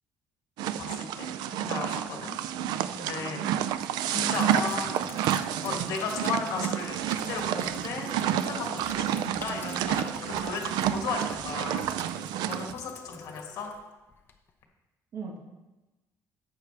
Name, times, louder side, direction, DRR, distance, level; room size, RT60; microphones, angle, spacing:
sound 1, 0.6-12.7, right 10 dB, 85° right, 0.4 m, -30 dB
voice 1, 0.8-2.4 2.9-3.4 4.0-5.1 5.4-11.9 12.5-13.7, left 5 dB, 60° left, 2 dB, 1.8 m, -35 dB
Sink (filling or washing), 2.6-3.1 3.7-14.6, left 5 dB, 30° left, 0.7 m, -48 dB
voice 2, 3.1-3.8 15.1-15.4, right 4 dB, 40° right, 0 dB, 1.4 m, -41 dB
sound 2, 5.1-11.9, left 1 dB, 15° right, 3.3 m, -53 dB
11.5 x 8.0 x 3.3 m, 1.1 s
cardioid pair, 170°, 7 cm